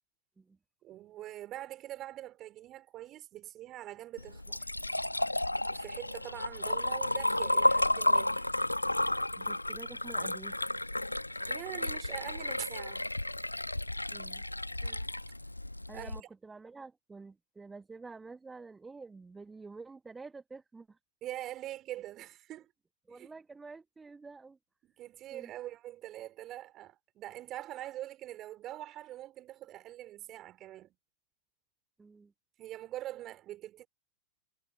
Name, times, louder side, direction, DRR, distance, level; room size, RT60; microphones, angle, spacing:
voice 1, 0.8-4.7 5.6-8.5 11.5-13.1 14.8-15.2 15.9-16.3 21.2-22.7 23.1-23.3 25.0-30.9 32.6-33.9, right 14 dB, 35° right, 4.2 m, -44 dB
Liquid, 4.2-16.2, left 1 dB, 85° left, 1.3 m, -32 dB
voice 2, 9.4-10.6 14.1-14.4 15.9-21.0 23.1-24.6 25.3-25.5 32.0-32.3, right 4 dB, 10° right, 1.4 m, -49 dB
figure-of-eight pair, 90°, 0 cm